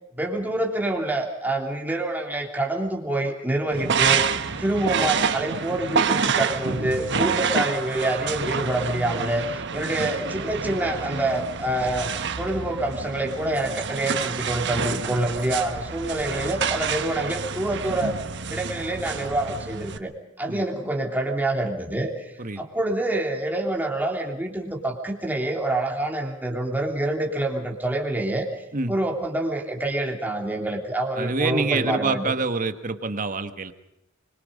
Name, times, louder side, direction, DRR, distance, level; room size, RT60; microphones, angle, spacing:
voice 1, 0.2-4.3 4.6-18.1 18.5-20.1 20.4-28.5 28.9-32.3, right 1 dB, 10° right, 1 dB, 3.2 m, -26 dB
sound 1, 3.7-20.0, right 6 dB, 60° right, 1.2 m, -28 dB
voice 2, 31.2-33.7, right 3 dB, 40° right, 10 dB, 1.4 m, -26 dB
25.0 x 22.5 x 5.3 m, 0.90 s
head